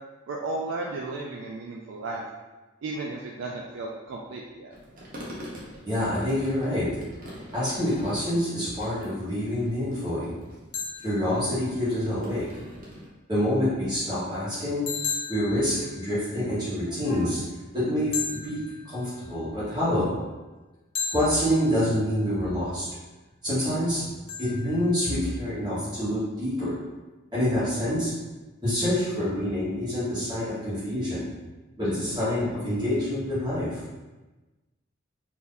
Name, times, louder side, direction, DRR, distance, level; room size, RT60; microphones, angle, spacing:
voice 1, 0.3-2.2 2.8-4.7, right 2 dB, 75° right, -2 dB, 0.4 m, -34 dB
sound 1, 4.7-13.1, equal, 45° right, 0.8 m, -45 dB
voice 2, 5.8-6.9 7.5-10.3 11.0-12.4 13.3-14.8 15.3-18.1 18.4-18.6 18.8-20.1 21.1-22.8 23.4-24.0 24.4-26.7 27.3-28.1 28.6-31.3 31.8-33.8, equal, 20° right, -12 dB, 1.3 m, -26 dB
sound 2, 7.7-8.5 10.7-12.1 14.9-16.6 18.1-19.5 20.9-22.3 24.3-25.5, left 5 dB, 25° left, 0.5 m, -37 dB
2.9 x 2.6 x 3.7 m, 1.2 s
head